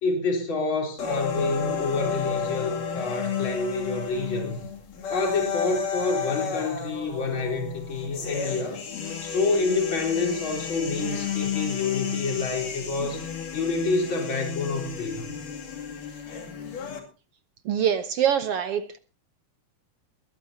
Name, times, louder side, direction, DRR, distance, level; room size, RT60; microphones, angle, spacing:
voice 1, 0.0-4.6 5.1-8.8 9.2-13.3 13.5-15.3, left 3 dB, 35° left, 4.6 m, -28 dB
sound 1, 1.0-17.0, left 7 dB, 75° left, 4.1 m, -32 dB
voice 2, 17.6-19.0, right 9 dB, 80° right, 1.3 m, -24 dB
21.0 x 14.0 x 2.8 m
omnidirectional pair, 3.8 m